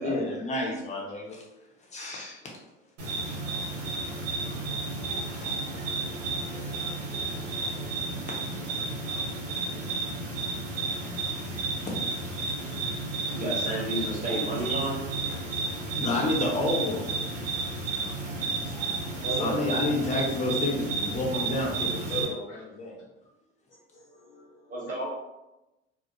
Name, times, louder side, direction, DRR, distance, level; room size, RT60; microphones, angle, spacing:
voice 1, 0.0-1.4 1.9-2.5 3.4-3.5 5.1-5.6 6.7-6.8 7.1-7.4 8.2-8.3 9.3-9.8 10.1-10.2 11.3-11.9 12.7-13.2 14.7-14.8 16.0-17.0 17.7-18.1 18.6-18.7 19.3-23.0, left 2 dB, 20° left, -2 dB, 0.8 m, -31 dB
sound 1, 3.0-22.2, right 3 dB, 75° right, 1.1 m, -32 dB
voice 2, 3.8-4.1 4.4-4.6 5.2-6.0 6.5-6.9 9.1-9.3 10.7-10.8 11.1-11.8 12.6-12.7 15.2-15.4 18.0-18.1 22.5-22.6 23.9-24.6, left 2 dB, 90° left, -7 dB, 0.6 m, -53 dB
voice 3, 13.3-15.0 19.2-19.8 24.7-25.1, right 1 dB, 25° right, -4 dB, 1.2 m, -31 dB
2.4 x 2.1 x 2.8 m, 0.98 s
hypercardioid pair, 75°, 35 cm